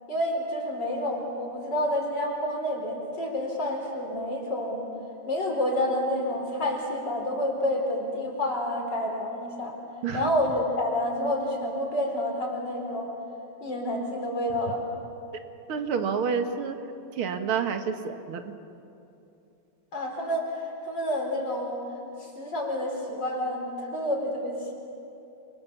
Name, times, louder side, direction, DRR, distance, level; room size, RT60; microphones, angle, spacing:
voice 1, 0.1-4.9 5.3-9.7 10.1-13.1 13.6-14.8 19.9-21.8 22.2-24.7, left 1 dB, 55° left, 0 dB, 5.0 m, -29 dB
voice 2, 15.7-16.8 17.2-18.4, right 6 dB, 80° right, 7 dB, 2.3 m, -28 dB
29.5 x 24.0 x 7.3 m, 2.8 s
omnidirectional pair, 2.3 m